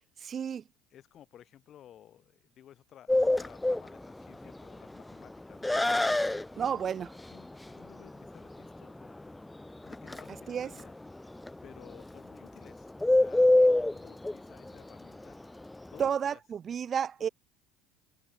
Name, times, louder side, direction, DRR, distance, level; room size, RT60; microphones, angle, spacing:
voice 1, 0.2-0.6 6.6-7.1 10.5-10.7 16.0-17.3, right 7 dB, 40° right, 0.8 m, -31 dB
voice 2, 0.9-6.7 7.3-9.3 9.8-10.9 11.2-11.3 11.6-15.4 15.9-16.4 17.2-17.3, left 11 dB, 50° left, 3.1 m, -55 dB
Bird, 3.1-16.1, left 2 dB, 10° left, 0.5 m, -28 dB
hypercardioid pair, 75°, 0 cm